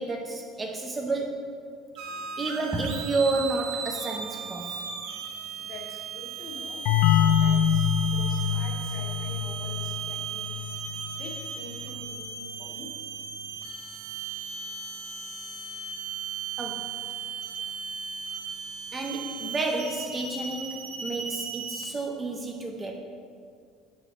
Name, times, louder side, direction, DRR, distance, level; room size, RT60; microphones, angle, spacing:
voice 1, 0.0-1.6 2.4-4.8 16.6-17.0 18.9-22.9, right 3 dB, 15° right, 1 dB, 0.6 m, -30 dB
sound 1, 2.0-21.9, right 6 dB, 65° right, 1.1 m, -36 dB
voice 2, 5.6-10.5 11.1-12.9, left 3 dB, 45° left, -3 dB, 2.0 m, -45 dB
sound 2, 6.9-12.3, left 8 dB, 65° left, 0.4 m, -26 dB
7.6 x 6.1 x 6.9 m, 2.3 s
cardioid pair, 175°, 0 cm